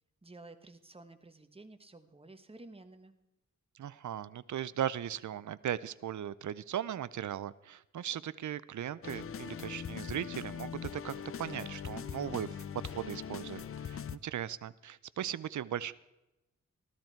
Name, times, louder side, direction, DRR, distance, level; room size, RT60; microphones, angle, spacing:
voice 1, 0.2-3.1, right 2 dB, 20° right, 9 dB, 1.1 m, -52 dB
voice 2, 3.8-15.9, right 10 dB, 80° right, 18 dB, 0.6 m, -38 dB
sound 1, 9.0-14.2, left 7 dB, 50° left, 0.5 m, -41 dB
14.0 x 13.0 x 4.5 m, 0.96 s
wide cardioid pair, 85°, 29 cm